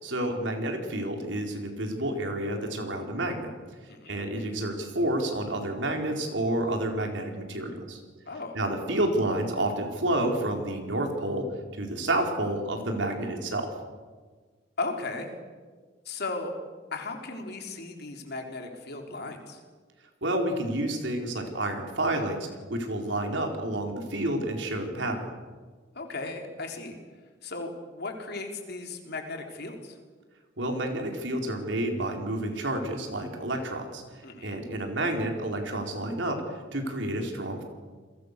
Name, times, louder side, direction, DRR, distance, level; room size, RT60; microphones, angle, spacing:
voice 1, 0.0-3.5 4.1-8.0 8.5-11.4 11.8-13.7 20.2-25.3 30.6-34.0 34.4-37.6, right 1 dB, 70° right, 3 dB, 4.5 m, -29 dB
voice 2, 3.9-4.2 8.3-8.6 14.8-15.3 16.1-16.5 16.9-19.6 25.9-27.0 27.4-30.0 34.2-34.6, left 3 dB, 60° left, 3 dB, 4.0 m, -36 dB
29.5 x 22.0 x 6.9 m, 1.4 s
head